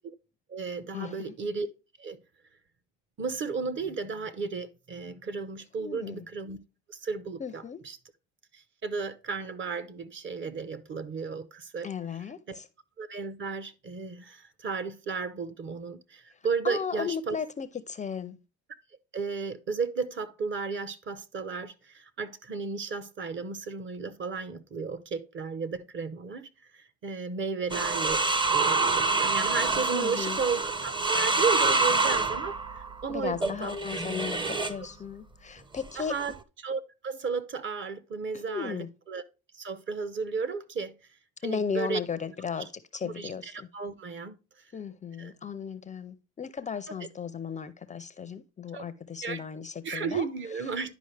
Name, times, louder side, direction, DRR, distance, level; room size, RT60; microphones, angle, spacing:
voice 1, 0.5-1.7 2.0-2.2 3.2-6.6 6.9-8.0 8.5-11.9 12.5-12.6 13.0-17.4 19.1-28.2 28.5-33.7 36.0-39.2 39.5-40.9 41.4-42.0 43.0-44.4 45.2-45.3 46.9-47.0 48.7-48.9 49.2-49.4 49.8-50.9, right 5 dB, 40° right, 0.9 m, -34 dB
voice 2, 5.8-6.3 7.4-7.8 11.8-12.7 16.6-18.4 29.9-30.4 33.1-36.1 38.3-38.9 41.4-43.7 44.7-50.3, left 6 dB, 25° left, 0.4 m, -35 dB
sound 1, 27.7-34.8 35.8-36.4, right 3 dB, 15° right, 0.6 m, -27 dB
10.5 x 5.1 x 3.2 m
cardioid pair, 115°, 31 cm